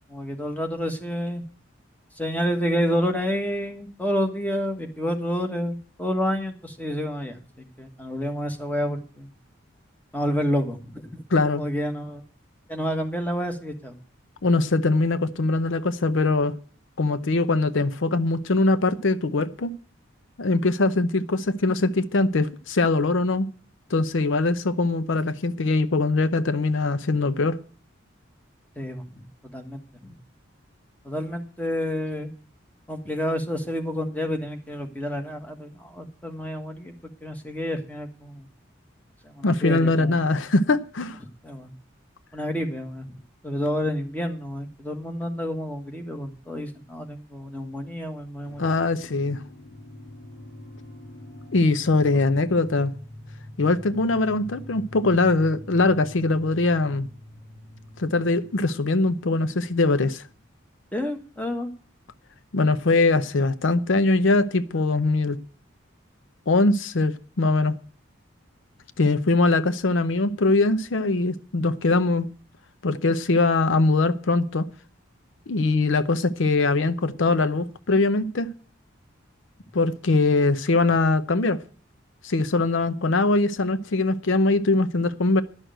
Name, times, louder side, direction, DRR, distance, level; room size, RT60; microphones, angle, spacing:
voice 1, 0.1-1.4 2.2-7.4 7.8-9.3 10.1-11.2 11.6-12.2 12.7-13.9 28.8-29.3 29.5-30.1 31.0-32.3 32.9-36.9 37.2-38.5 39.2-40.2 41.4-41.7 42.3-48.7 52.1-52.2 60.9-61.7, equal, 10° left, 1.5 m, -29 dB
voice 2, 11.3-11.6 14.4-16.6 17.0-19.7 20.4-23.5 23.9-27.6 39.4-41.2 48.6-49.4 51.5-52.9 53.6-57.1 58.0-60.2 62.5-65.4 66.5-67.7 69.0-72.3 72.8-74.7 75.5-78.5 79.7-81.6 82.2-85.4, left 3 dB, 75° left, 0.6 m, -22 dB
sound 1, 48.4-60.7, left 1 dB, 60° left, 2.5 m, -45 dB
11.5 x 6.3 x 9.0 m
head